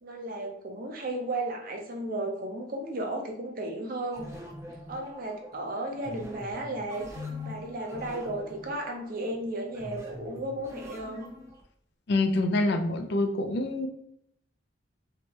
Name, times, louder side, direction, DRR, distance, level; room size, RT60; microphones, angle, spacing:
voice 1, 0.0-4.2 4.9-7.2 7.4-11.3, right 1 dB, 45° right, 2 dB, 0.6 m, -34 dB
sound 1, 4.1-11.6, equal, 15° right, 0.8 m, -45 dB
voice 2, 7.2-7.6 12.1-13.9, left 2 dB, 55° left, 6 dB, 0.4 m, -27 dB
3.3 x 2.9 x 3.0 m, 0.72 s
head